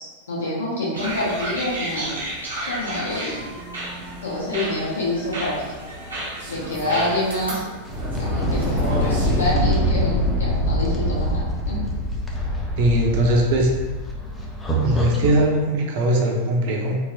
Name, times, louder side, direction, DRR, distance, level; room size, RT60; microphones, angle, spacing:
voice 1, 0.0-2.2 2.6-3.5 4.2-5.7 6.5-7.6 8.2-11.8, left 1 dB, 70° left, -5 dB, 0.9 m, -27 dB
sound 1, 0.9-9.5, right 1 dB, 80° right, 0.8 m, -32 dB
sound 2, 7.8-15.4, equal, 15° left, 0.5 m, -24 dB
voice 2, 12.8-13.7 14.8-17.0, right 1 dB, 50° right, 0 dB, 0.6 m, -20 dB
3.8 x 2.1 x 2.7 m, 1.3 s
figure-of-eight pair, 90°, 0 cm